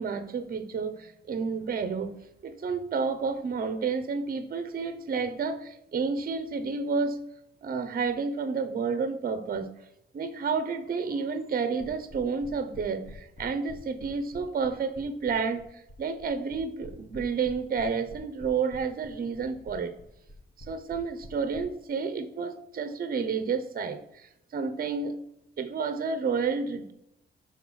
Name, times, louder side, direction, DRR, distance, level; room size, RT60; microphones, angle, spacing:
voice 1, 0.0-2.2 2.4-7.2 7.6-9.7 10.1-15.6 16.0-19.9 20.7-25.2 25.6-26.9, right 5 dB, 45° right, 10 dB, 0.6 m, -30 dB
sound 1, 11.8-21.6, left 1 dB, 30° left, 1.0 m, -46 dB
5.8 x 3.8 x 6.1 m, 0.83 s
wide cardioid pair, 145°, 21 cm